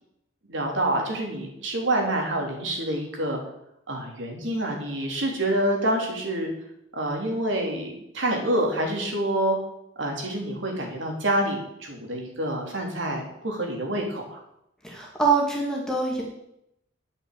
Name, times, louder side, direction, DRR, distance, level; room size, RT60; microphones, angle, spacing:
voice 1, 0.5-3.4 3.9-6.5 6.9-9.6 10.0-14.4, right 1 dB, 70° right, 1 dB, 3.3 m, -27 dB
voice 2, 14.8-16.2, right 4 dB, 5° left, -2 dB, 2.2 m, -24 dB
10.0 x 6.6 x 8.3 m, 0.79 s
head